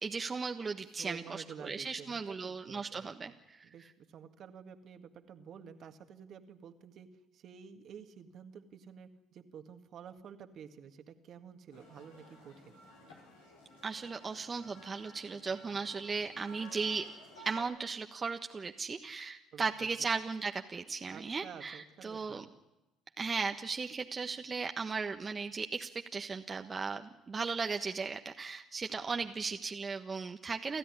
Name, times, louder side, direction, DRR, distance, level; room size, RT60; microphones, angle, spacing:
voice 1, 0.0-3.6 13.8-17.0 17.4-22.4 23.2-30.8, right 4 dB, 30° right, 5 dB, 1.2 m, -37 dB
voice 2, 1.0-3.4 3.6-7.1 7.3-12.8 19.5-20.1 21.1-22.5, right 7 dB, 55° right, 7 dB, 1.9 m, -51 dB
sound 1, 11.7-17.6, equal, 90° left, 5.3 m, -54 dB
29.5 x 13.5 x 9.8 m, 1.0 s
hypercardioid pair, 55°, 0 cm